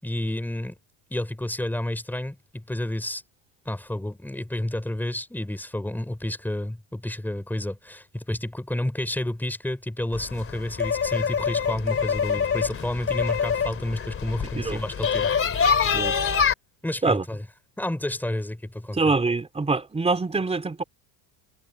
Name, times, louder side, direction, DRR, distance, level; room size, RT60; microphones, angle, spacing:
voice 1, 0.0-0.7 1.1-3.2 3.6-15.3 16.8-17.4 17.8-19.0, left 1 dB, 5° left, 4.9 m, -30 dB
sound 1, 10.1-16.5, left 6 dB, 25° left, 3.1 m, -25 dB
voice 2, 18.9-20.8, right 3 dB, 15° right, 3.1 m, -24 dB
cardioid pair, 135°, 46 cm